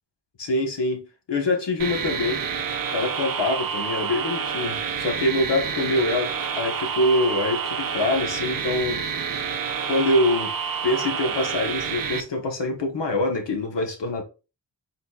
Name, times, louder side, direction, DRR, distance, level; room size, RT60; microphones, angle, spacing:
voice 1, 0.4-2.4 2.9-9.1 9.8-10.5 10.8-14.2, left 2 dB, 70° left, 1.3 m, -25 dB
sound 1, 1.8-12.2, right 6 dB, 50° right, 0.7 m, -28 dB
4.0 x 4.0 x 2.4 m
cardioid pair, 45°, 45 cm